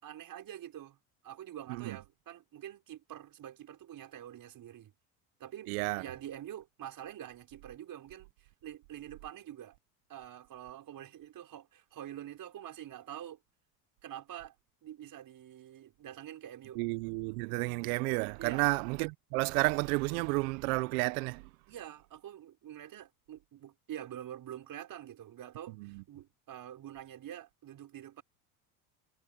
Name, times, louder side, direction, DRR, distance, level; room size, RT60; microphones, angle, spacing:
voice 1, 0.0-1.0 1.2-4.9 5.4-5.7 6.0-9.8 10.1-13.4 14.0-14.5 14.8-16.8 18.4-18.7 21.7-28.2, right 11 dB, 50° right, 5.4 m, -46 dB
voice 2, 5.7-6.0 16.7-21.5 25.7-26.0, right 25 dB, 75° right, 1.1 m, -32 dB
hypercardioid pair, 80°, 43 cm